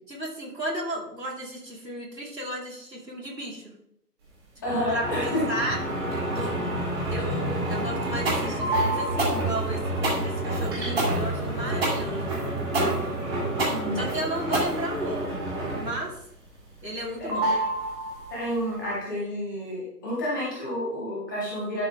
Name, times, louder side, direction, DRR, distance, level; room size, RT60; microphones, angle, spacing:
voice 1, 0.1-3.6 4.7-5.8 6.3-6.6 7.1-12.4 13.9-15.5 15.7-16.2 16.8-17.5, equal, 90° right, -3 dB, 3.5 m, -34 dB
voice 2, 4.6-5.4 13.7-14.0 17.2-17.5 18.3-21.9, equal, 10° left, -7 dB, 1.6 m, -30 dB
sound 1, 4.7-16.1 16.5-17.0 17.3-18.6, right 1 dB, 15° right, 2.1 m, -29 dB
sound 2, 8.3-15.3, right 2 dB, 35° right, 2.4 m, -28 dB
11.5 x 5.8 x 3.2 m, 0.74 s
figure-of-eight pair, 150°, 49 cm